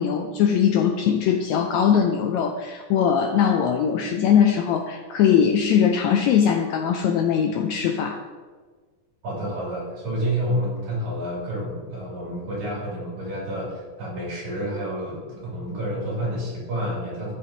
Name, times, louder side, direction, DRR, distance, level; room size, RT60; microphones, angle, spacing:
voice 1, 0.0-8.2, left 8 dB, 85° left, 4 dB, 1.6 m, -21 dB
voice 2, 9.2-17.3, equal, 60° right, -5 dB, 3.9 m, -29 dB
14.0 x 5.6 x 2.9 m, 1.4 s
omnidirectional pair, 3.8 m